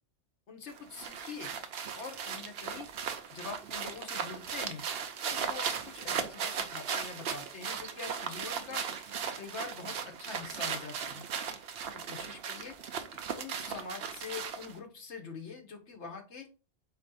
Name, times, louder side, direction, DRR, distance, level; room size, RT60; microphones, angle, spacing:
voice 1, 0.5-1.5 1.9-2.9 3.3-4.9 5.3-8.8 9.4-11.3 11.9-12.8 13.3-16.5, left 4 dB, 80° left, 4 dB, 1.4 m, -44 dB
sound 1, 0.7-14.8, right 7 dB, 65° right, 0.8 m, -37 dB
4.2 x 3.1 x 4.0 m, 0.32 s
omnidirectional pair, 1.2 m